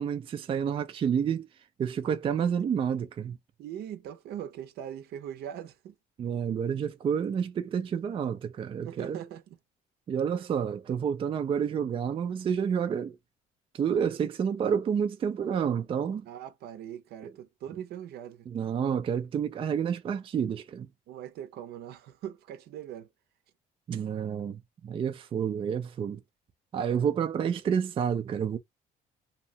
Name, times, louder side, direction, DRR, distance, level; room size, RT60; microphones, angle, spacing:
voice 1, 0.0-1.5 1.8-3.4 6.2-9.2 10.1-13.2 13.7-16.3 18.5-20.9 23.9-26.2 26.7-28.6, right 7 dB, 30° right, 0.4 m, -29 dB
voice 2, 3.6-5.9 8.8-9.6 16.2-18.5 21.1-23.1, right 10 dB, 70° right, 0.6 m, -41 dB
2.8 x 2.1 x 2.7 m
cardioid pair, 110°, 17 cm